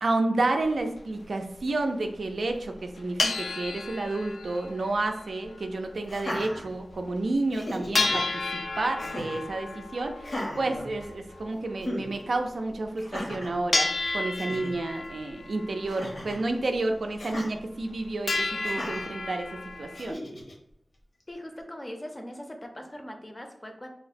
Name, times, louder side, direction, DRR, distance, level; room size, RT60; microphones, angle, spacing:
voice 1, 0.0-8.2 8.5-13.9 14.1-19.5 19.8-20.2, right 2 dB, 80° right, 4 dB, 0.3 m, -30 dB
sound 1, 0.6-0.7 1.3-1.4 1.6-1.7 2.5-2.6 2.8-5.9 6.2-6.3 6.7-6.8 7.2-7.3 7.9-12.5 13.1-13.3 13.7-16.7 17.1-17.2 17.5-18.0 18.3-20.1, left 3 dB, 80° left, 0.3 m, -32 dB
Laughter, 6.0-7.1 7.5-8.2 9.0-9.5 10.2-11.4 11.8-12.1 13.0-13.6 14.1-14.2 14.3-14.7 15.9-16.4 17.2-17.5 18.6-19.1 19.9-20.5, left 1 dB, 60° left, 0.7 m, -36 dB
voice 2, 21.3-23.9, left 1 dB, 20° left, 3 dB, 0.5 m, -40 dB
2.8 x 2.0 x 4.0 m, 0.75 s
wide cardioid pair, 90°, 0 cm